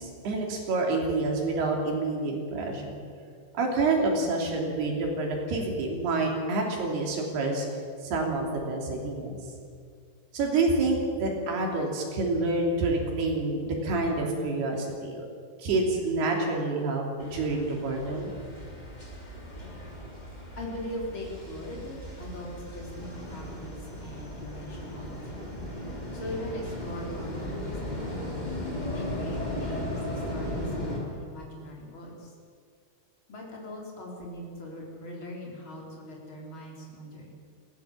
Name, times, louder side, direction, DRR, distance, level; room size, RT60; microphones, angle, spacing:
voice 1, 0.0-3.0 3.6-7.7 8.0-9.4 10.3-15.2 15.6-18.3, right 3 dB, 85° right, 0 dB, 5.1 m, -28 dB
sound 1, 17.2-31.0, left 1 dB, 10° left, 3.2 m, -36 dB
voice 2, 20.6-25.4 26.1-28.6 28.9-30.0 30.3-32.3 33.3-37.3, left 1 dB, 30° left, -2 dB, 4.5 m, -41 dB
21.0 x 16.5 x 7.5 m, 2.1 s
omnidirectional pair, 4.5 m